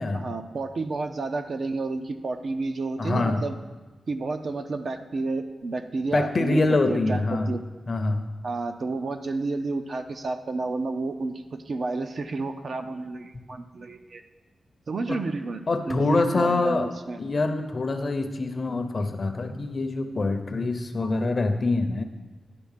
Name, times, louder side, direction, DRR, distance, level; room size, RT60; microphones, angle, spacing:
voice 1, 0.1-3.6 4.1-7.6 8.4-14.2 14.9-15.6 15.9-17.2 21.0-21.2, right 3 dB, 45° right, 7 dB, 0.5 m, -31 dB
voice 2, 3.0-3.4 6.1-7.5 7.9-8.3 15.1-15.2 15.7-16.9 17.2-22.0, left 2 dB, 35° left, 7 dB, 0.7 m, -25 dB
10.5 x 4.2 x 7.3 m, 1.2 s
wide cardioid pair, 170°, 0 cm